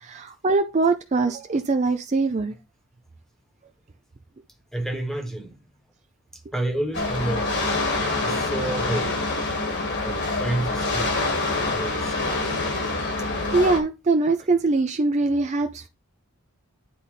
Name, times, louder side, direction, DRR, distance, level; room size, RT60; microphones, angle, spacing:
voice 1, 0.0-2.6 13.5-15.9, right 3 dB, 30° right, 0.4 m, -22 dB
voice 2, 4.7-5.6 6.3-7.8 8.2-9.3 10.0-11.2 11.5-12.2, right 1 dB, ahead, 1.2 m, -30 dB
sound 1, 6.9-13.8, left 2 dB, 50° left, 1.8 m, -26 dB
10.0 x 4.0 x 3.3 m
head